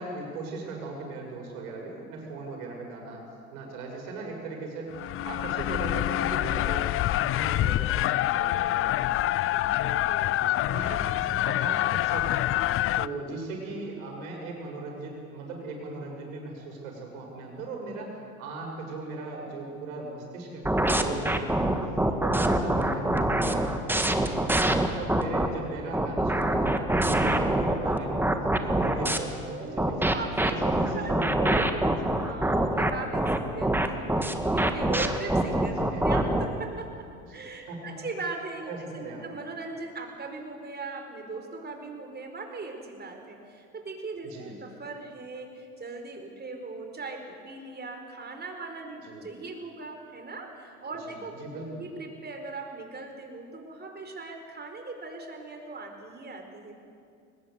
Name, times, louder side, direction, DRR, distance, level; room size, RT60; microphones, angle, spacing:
voice 1, 0.0-4.9 5.2-9.1 10.4-12.5 13.0-21.8 22.2-30.0 30.5-32.1 35.6-36.4 37.3-37.9 38.7-39.3 44.2-44.6 49.0-49.3 51.0-51.8, right 3 dB, 70° right, 1 dB, 6.9 m, -38 dB
sound 1, 4.9-13.1, left 14 dB, 30° left, 0.5 m, -26 dB
voice 2, 8.4-9.1 9.5-10.7 11.0-11.1 29.4-30.6 30.9-31.1 32.2-56.7, right 3 dB, 25° right, 4 dB, 4.7 m, -39 dB
sound 2, 20.6-25.5 25.9-29.2 29.8-36.5, right 1 dB, 5° right, 1.8 m, -24 dB
22.0 x 19.5 x 8.0 m, 2.4 s
hypercardioid pair, 80°, 43 cm